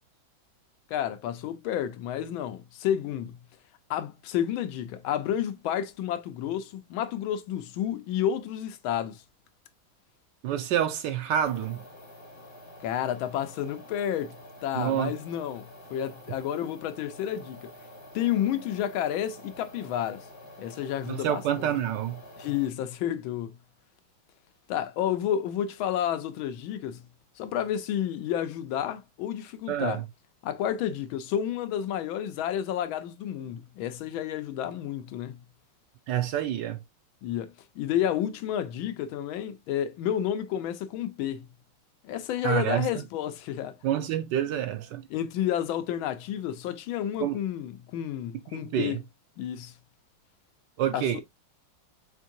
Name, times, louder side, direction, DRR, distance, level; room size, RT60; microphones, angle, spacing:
voice 1, 0.9-3.4 3.9-9.2 12.8-14.4 14.6-17.7 18.1-20.3 20.6-21.7 22.4-23.6 24.7-27.1 27.4-30.0 30.4-35.4 37.2-41.5 42.0-43.8 45.1-49.0 49.4-49.7 50.9-51.1, left 10 dB, 80° left, 1.4 m, -30 dB
voice 2, 10.4-11.8 14.7-15.1 21.1-22.2 29.7-30.0 36.1-36.8 42.4-43.0 43.8-45.0 47.2-47.4 48.5-49.0 50.8-51.2, right 10 dB, 70° right, 1.2 m, -28 dB
sound 1, 11.4-22.7, left 1 dB, 25° left, 0.6 m, -48 dB
4.5 x 3.6 x 2.6 m
omnidirectional pair, 2.2 m